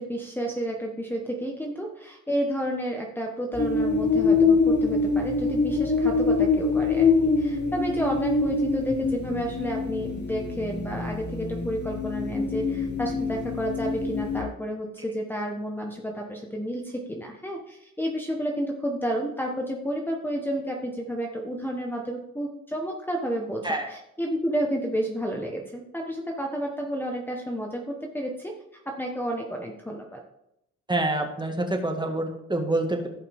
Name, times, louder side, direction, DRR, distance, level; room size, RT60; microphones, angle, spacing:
voice 1, 0.0-28.5 28.8-30.2, equal, 5° left, 0 dB, 1.4 m, -31 dB
sound 1, 3.5-14.4, left 4 dB, 35° left, 1.8 m, -25 dB
voice 2, 30.9-33.1, right 2 dB, 15° right, 3 dB, 2.0 m, -27 dB
16.0 x 5.6 x 3.7 m, 0.82 s
cardioid pair, 90°, 30 cm